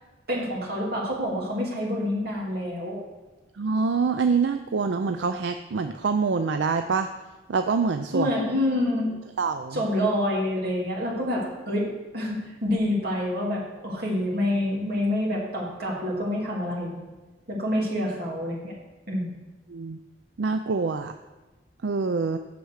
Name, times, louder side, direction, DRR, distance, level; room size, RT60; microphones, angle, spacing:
voice 1, 0.3-3.0 8.1-9.1 9.7-16.9 17.5-18.7 19.1-19.3, left 1 dB, 55° right, -4 dB, 2.8 m, -27 dB
voice 2, 3.6-7.1 7.5-8.3 9.4-9.8 19.7-20.0 20.4-21.1 21.8-22.4, right 5 dB, 80° right, 8 dB, 0.4 m, -25 dB
7.7 x 6.9 x 6.5 m, 1.2 s
head